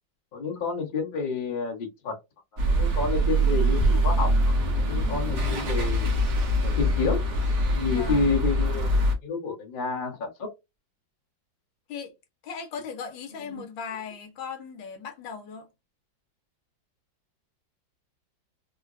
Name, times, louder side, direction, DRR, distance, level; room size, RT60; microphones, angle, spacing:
voice 1, 0.3-2.1 2.7-4.3 4.8-6.0 6.6-7.2 7.7-10.5 13.5-13.6, left 4 dB, 35° left, 0.9 m, -29 dB
sound 1, 2.6-9.1, equal, 60° right, 0.7 m, -24 dB
voice 2, 7.8-8.3 11.9-12.1 12.4-15.7, left 6 dB, 75° left, 1.3 m, -38 dB
3.8 x 2.1 x 2.4 m
omnidirectional pair, 2.1 m